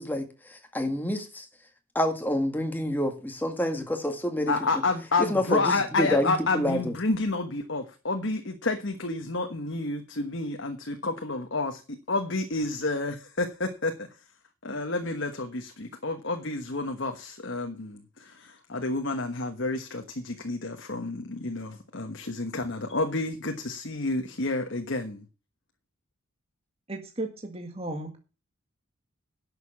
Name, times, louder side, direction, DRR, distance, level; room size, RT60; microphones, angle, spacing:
voice 1, 0.0-1.5 2.0-4.5 5.2-6.9, left 1 dB, 10° left, 1.8 m, -28 dB
voice 2, 4.5-11.8 12.1-14.1 14.6-25.2, left 3 dB, 60° left, 1.3 m, -30 dB
voice 3, 26.9-28.2, right 2 dB, 30° right, 1.8 m, -35 dB
11.5 x 6.8 x 7.1 m
head